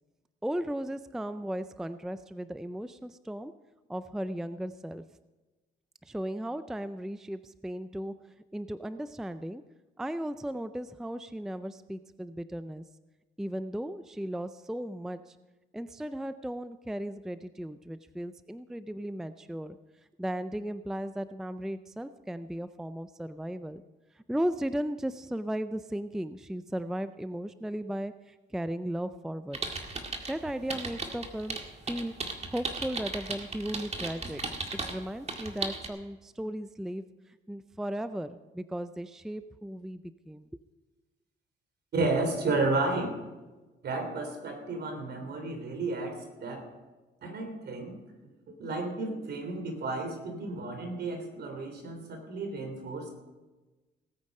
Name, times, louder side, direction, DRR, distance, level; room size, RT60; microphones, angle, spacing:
voice 1, 0.4-3.5 3.9-5.0 6.0-8.2 8.5-9.6 10.0-12.8 13.4-15.4 15.7-19.8 20.2-23.8 24.1-29.6 30.3-34.4 34.8-40.6, right 1 dB, ahead, 13 dB, 0.4 m, -36 dB
sound 1, 29.5-30.3 30.7-35.0 35.3-35.9, right 3 dB, 35° right, 2.0 m, -35 dB
voice 2, 41.9-43.1 43.8-46.7 47.2-48.0 48.6-53.1, right 3 dB, 55° right, 5 dB, 3.3 m, -32 dB
18.5 x 8.7 x 5.4 m, 1.2 s
cardioid pair, 90°, 20 cm